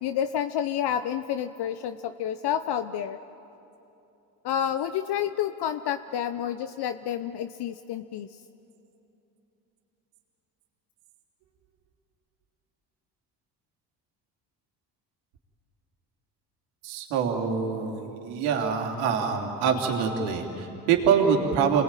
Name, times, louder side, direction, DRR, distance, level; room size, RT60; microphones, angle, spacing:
voice 1, 0.0-3.2 4.4-8.3, left 9 dB, 50° left, 10 dB, 0.9 m, -29 dB
voice 2, 16.8-21.8, right 6 dB, 75° right, 1 dB, 3.4 m, -25 dB
28.0 x 20.5 x 9.1 m, 2.9 s
hypercardioid pair, 65°, 49 cm